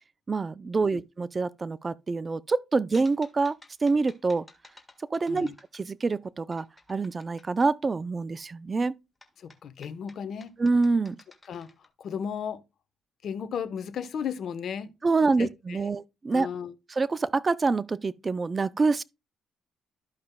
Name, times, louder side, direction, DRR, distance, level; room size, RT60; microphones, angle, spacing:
voice 1, 0.3-4.5 5.1-5.5 5.7-8.9 10.6-11.2 15.0-16.5 17.0-19.0, right 3 dB, 30° right, 0.4 m, -26 dB
sound 1, 2.9-6.2 6.5-7.7 9.2-11.9, left 2 dB, 15° left, 1.5 m, -54 dB
voice 2, 9.4-10.5 11.5-11.7 12.0-12.6 13.2-14.9 15.4-15.9 16.3-16.7, left 7 dB, 65° left, 0.9 m, -35 dB
14.0 x 5.2 x 2.2 m
cardioid pair, 90°, 0 cm